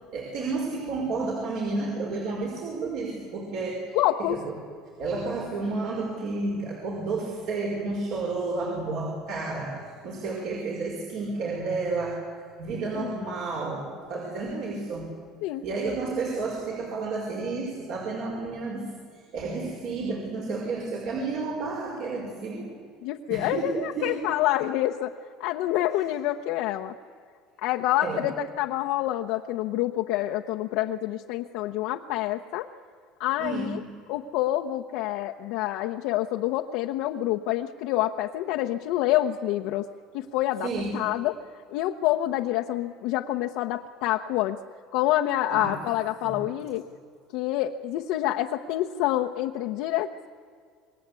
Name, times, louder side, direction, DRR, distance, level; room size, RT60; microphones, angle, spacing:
voice 1, 0.1-4.0 4.3-4.5 5.0-15.1 15.6-18.9 19.3-22.7 23.3-24.2 28.0-28.2 33.4-33.8 40.6-41.0 45.5-45.8 46.2-46.4, right 3 dB, 55° right, -1 dB, 5.4 m, -31 dB
voice 2, 3.9-4.4 13.0-13.1 15.4-15.6 23.0-25.1 25.4-26.9 27.6-32.7 33.2-33.8 34.1-39.9 40.1-41.4 41.7-44.6 44.9-46.8 47.3-50.3, left 14 dB, 70° left, 1 dB, 1.0 m, -27 dB
27.5 x 21.5 x 8.4 m, 2.1 s
cardioid pair, 150°, 0 cm